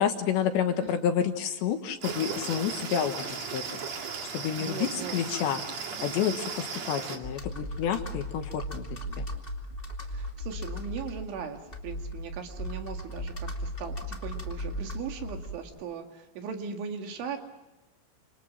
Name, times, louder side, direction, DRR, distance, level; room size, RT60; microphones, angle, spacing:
voice 1, 0.0-3.9 4.3-5.6 6.0-9.3, left 8 dB, 65° left, 6 dB, 3.4 m, -29 dB
sound 1, 2.0-7.2, right 5 dB, 45° right, 2.6 m, -36 dB
voice 2, 4.6-5.2 10.1-17.4, right 6 dB, 70° right, 4 dB, 4.4 m, -38 dB
Computer keyboard, 7.2-15.8, equal, 45° left, 0.7 m, -37 dB
28.5 x 27.0 x 7.5 m, 1.0 s
omnidirectional pair, 5.9 m